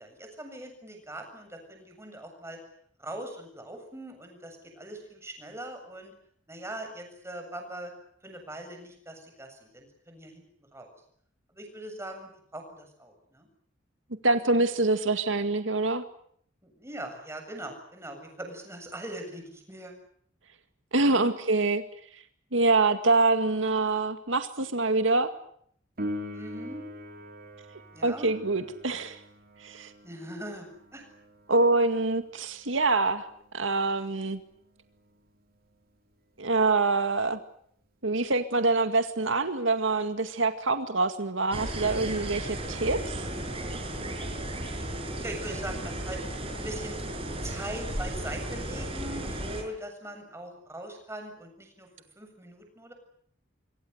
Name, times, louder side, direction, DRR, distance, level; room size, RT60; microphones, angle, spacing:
voice 1, 0.0-2.6 3.0-6.1 6.5-7.9 8.2-10.4 10.7-10.9 11.5-13.5 16.6-19.9 21.1-21.4 26.3-26.8 27.9-28.3 30.0-31.1 45.2-46.2 46.6-47.0 47.4-51.9 52.2-52.9, right 1 dB, 15° right, 4 dB, 7.5 m, -41 dB
voice 2, 14.2-16.0 20.9-21.8 22.5-25.3 28.0-29.2 29.6-29.9 31.5-33.2 33.5-34.4 36.4-37.4 38.0-43.2, right 3 dB, 85° right, 8 dB, 2.1 m, -25 dB
Piano, 26.0-36.4 43.9-44.0, equal, 50° right, 4.0 m, -44 dB
sound 1, 41.5-49.6, right 1 dB, 30° right, 6.4 m, -34 dB
26.5 x 24.5 x 8.1 m, 0.65 s
head